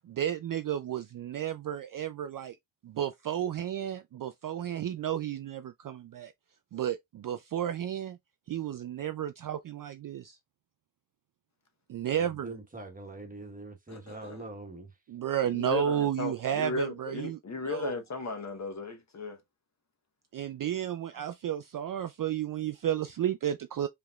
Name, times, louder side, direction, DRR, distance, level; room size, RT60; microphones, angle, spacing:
voice 1, 0.1-2.6 2.8-6.3 6.7-8.2 8.5-10.4 11.9-12.6 15.1-18.0 20.3-23.9, right 10 dB, 45° right, 0.4 m, -32 dB
voice 2, 12.1-14.9, right 2 dB, 15° right, 1.2 m, -43 dB
voice 3, 13.9-14.5 15.5-19.4, left 4 dB, 35° left, 1.0 m, -36 dB
4.9 x 3.4 x 2.3 m
cardioid pair, 120°, 50 cm